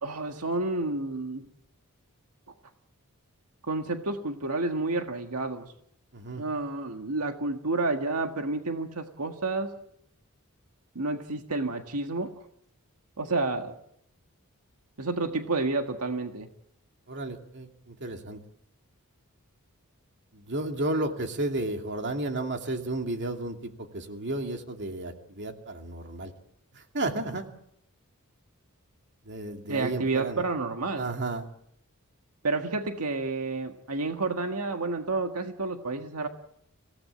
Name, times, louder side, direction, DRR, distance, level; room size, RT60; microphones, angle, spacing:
voice 1, 0.0-1.4 3.7-5.7 6.4-9.7 11.0-12.3 13.2-13.7 15.0-16.5 29.7-31.1 32.4-36.3, right 3 dB, 85° right, 5 dB, 1.8 m, -30 dB
voice 2, 6.1-6.4 17.1-18.4 20.3-26.3 26.7-27.5 29.3-30.4 31.0-31.5, right 2 dB, 50° right, 4 dB, 2.6 m, -33 dB
26.5 x 17.0 x 8.6 m, 0.76 s
head